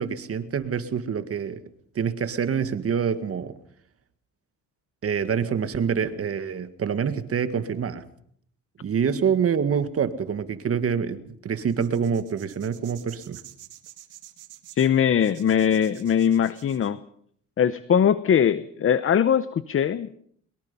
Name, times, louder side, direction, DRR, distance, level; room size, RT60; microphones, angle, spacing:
voice 1, 0.0-1.6 2.0-3.6 5.0-8.0 8.8-13.4, right 7 dB, 50° right, 1.9 m, -26 dB
sound 1, 11.7-16.9, right 13 dB, 90° right, 2.1 m, -48 dB
voice 2, 14.7-17.0 17.6-20.1, left 8 dB, 45° left, 0.9 m, -21 dB
22.5 x 22.5 x 5.5 m
cardioid pair, 90°, 30 cm